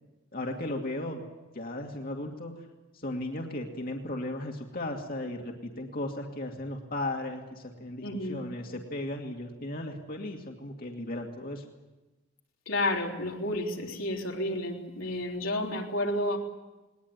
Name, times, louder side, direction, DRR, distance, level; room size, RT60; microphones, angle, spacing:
voice 1, 0.3-1.2 1.5-2.5 2.9-11.6, left 1 dB, 45° left, 1 dB, 2.3 m, -36 dB
voice 2, 8.0-8.4 12.7-16.4, left 1 dB, 85° left, 0 dB, 3.7 m, -31 dB
20.0 x 20.0 x 9.7 m, 1.1 s
head